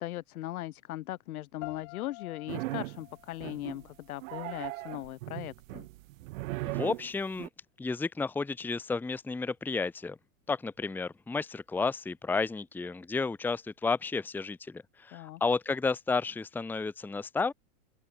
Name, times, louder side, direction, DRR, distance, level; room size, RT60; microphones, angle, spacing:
voice 1, 0.0-5.9 15.1-15.4, left 15 dB, 75° left, 5.8 m, -39 dB
sound 1, 1.6-4.6, left 40 dB or more, 50° left, 5.0 m, -49 dB
sound 2, 2.5-3.0 3.4-3.9 4.2-7.5, right 20 dB, 60° right, 1.2 m, -38 dB
voice 2, 6.6-7.5 7.8-10.2 10.5-17.5, left 4 dB, 5° left, 0.9 m, -32 dB
open air
supercardioid pair, 145°, 44 cm